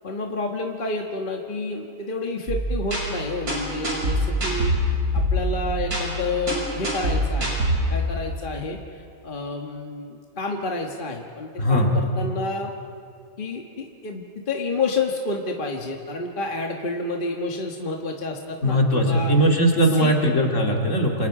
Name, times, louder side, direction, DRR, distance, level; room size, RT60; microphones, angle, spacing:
voice 1, 0.0-7.6 7.9-12.7 13.4-19.3 19.9-20.1, left 3 dB, 35° left, 1 dB, 1.6 m, -29 dB
sound 1, 2.5-7.8, equal, 85° right, 6.6 m, -25 dB
voice 2, 11.6-11.9 18.6-21.3, equal, 55° left, 1 dB, 2.8 m, -20 dB
28.0 x 28.0 x 4.9 m, 2.4 s
omnidirectional pair, 1.5 m